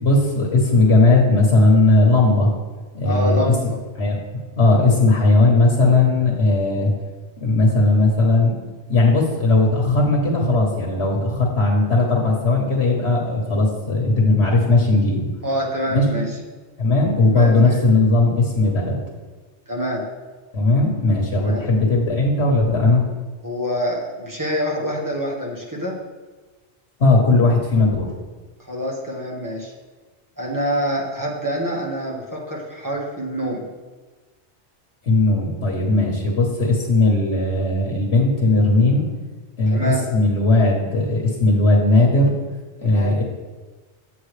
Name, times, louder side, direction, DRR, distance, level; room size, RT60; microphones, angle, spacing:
voice 1, 0.0-2.5 2.9-3.5 4.0-4.2 4.6-6.9 7.4-8.5 8.9-15.3 15.9-16.2 16.8-19.0 20.5-23.0 27.0-28.1 35.0-39.0 39.6-42.3 42.8-43.2, left 2 dB, 65° left, -2 dB, 1.5 m, -17 dB
voice 2, 3.0-3.8 15.4-16.3 17.3-17.8 19.7-20.1 21.4-21.7 23.4-26.0 28.7-29.7 30.4-33.7 39.7-40.0 42.8-43.1, equal, 15° right, -3 dB, 1.3 m, -26 dB
8.2 x 7.9 x 3.3 m, 1.3 s
omnidirectional pair, 1.2 m